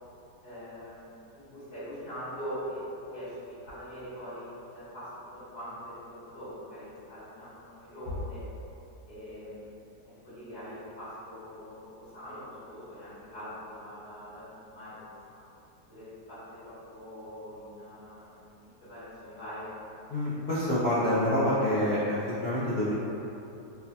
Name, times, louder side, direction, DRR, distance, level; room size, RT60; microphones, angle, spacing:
voice 1, 0.4-8.4 9.1-9.8 10.0-15.0 15.3-15.4 15.9-18.5 18.8-19.7, equal, 65° left, -19 dB, 2.1 m, -43 dB
voice 2, 20.1-22.9, left 1 dB, 85° left, -11 dB, 0.5 m, -27 dB
4.5 x 2.7 x 2.2 m, 2.9 s
omnidirectional pair, 1.7 m